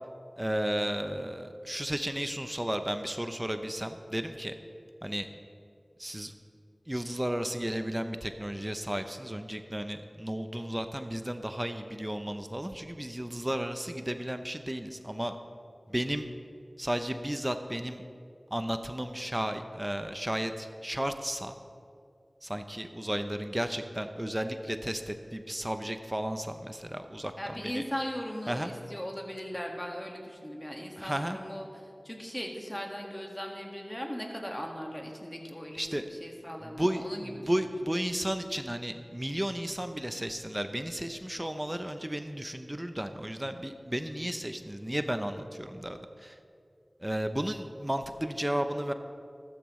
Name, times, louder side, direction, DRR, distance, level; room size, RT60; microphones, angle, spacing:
voice 1, 0.4-4.5 5.0-5.3 6.0-6.3 6.9-15.4 15.9-16.3 16.8-18.0 18.5-21.6 22.4-27.8 28.5-28.7 31.0-31.4 35.8-36.1 36.8-46.3 47.0-48.9, right 1 dB, 20° right, 8 dB, 0.7 m, -33 dB
voice 2, 27.4-37.7, equal, 15° left, 1 dB, 1.8 m, -38 dB
14.0 x 13.5 x 3.2 m, 2.4 s
wide cardioid pair, 40°, 0 cm